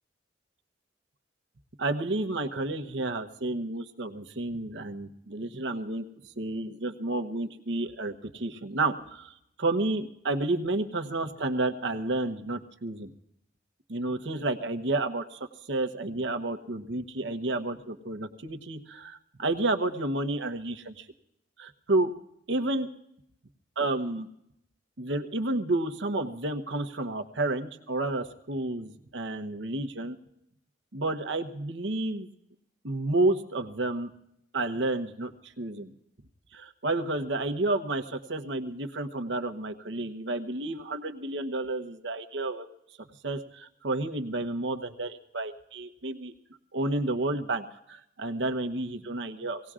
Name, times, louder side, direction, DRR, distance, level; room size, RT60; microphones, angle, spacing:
voice 1, 1.8-6.0 6.4-13.1 13.9-21.1 21.6-22.1 22.5-22.9 23.8-24.3 25.0-30.2 30.9-32.3 32.8-34.1 34.5-35.9 36.5-42.7 43.2-46.3 46.7-49.6, right 2 dB, 70° right, 7 dB, 0.9 m, -31 dB
25.5 x 17.5 x 2.5 m, 0.77 s
head